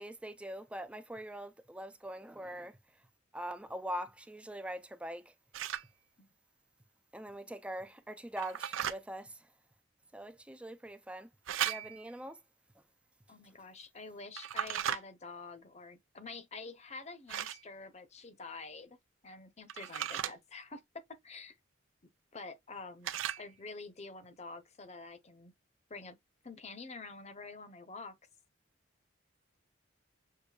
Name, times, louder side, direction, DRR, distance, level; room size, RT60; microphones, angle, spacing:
voice 1, 0.0-3.1 3.3-5.3 7.1-9.5 10.1-11.3 11.6-12.4 12.8-12.9, right 1 dB, 5° right, 0.3 m, -43 dB
sound 1, 5.5-5.9 8.4-9.0 11.5-12.1 14.4-15.0 17.3-17.6 19.7-20.3 23.0-23.5, right 10 dB, 85° right, 0.4 m, -36 dB
voice 2, 13.3-19.0 19.2-21.6 22.3-25.5 25.9-26.2 26.4-28.1, left 3 dB, 35° left, 0.8 m, -47 dB
6.6 x 2.6 x 2.3 m
head